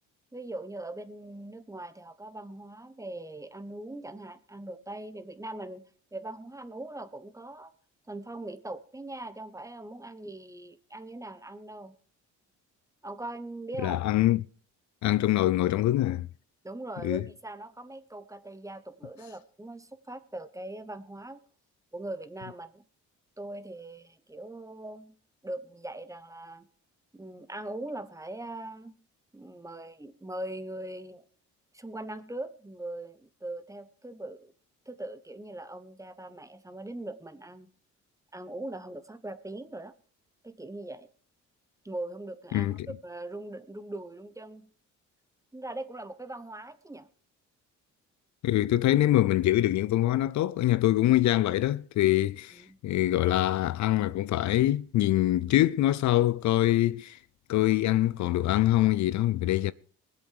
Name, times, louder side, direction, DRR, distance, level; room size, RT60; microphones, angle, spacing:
voice 1, 0.3-5.8 6.1-7.7 8.1-11.9 13.0-14.0 16.6-21.4 21.9-22.8 23.4-25.1 25.4-26.7 27.1-29.0 29.3-31.2 31.7-34.5 34.9-37.7 38.3-39.9 40.4-41.1 41.8-44.7 45.5-47.1 52.5-52.8, right 1 dB, 10° right, 1.1 m, -41 dB
voice 2, 13.8-14.4 15.0-16.3 17.0-17.2 42.5-42.9 48.4-57.2 57.5-59.7, left 14 dB, 65° left, 0.5 m, -24 dB
20.5 x 8.1 x 4.8 m
cardioid pair, 90°, 30 cm